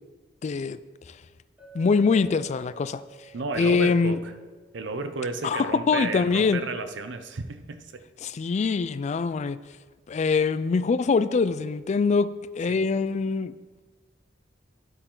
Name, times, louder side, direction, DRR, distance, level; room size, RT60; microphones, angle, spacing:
voice 1, 0.4-0.8 1.7-3.0 3.6-4.1 5.4-6.6 8.2-9.6 10.1-12.3 12.6-13.5, left 4 dB, 40° left, 15 dB, 0.3 m, -23 dB
Chink clink, 1.6-5.6, right 8 dB, 10° right, 2.2 m, -50 dB
voice 2, 3.3-4.3 4.7-8.0 12.7-12.8, right 3 dB, 70° right, 9 dB, 0.7 m, -33 dB
10.0 x 8.6 x 3.8 m, 1.4 s
head